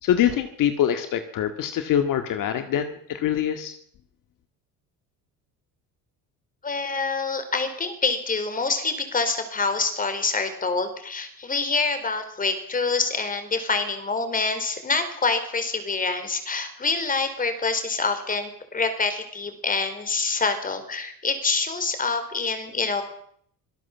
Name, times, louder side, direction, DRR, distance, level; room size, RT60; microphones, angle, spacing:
voice 1, 0.0-3.7, left 10 dB, 60° left, 7 dB, 2.0 m, -24 dB
voice 2, 6.6-23.0, left 4 dB, 25° left, 9 dB, 4.3 m, -26 dB
25.5 x 17.5 x 7.3 m, 0.66 s
cardioid pair, 135°, 36 cm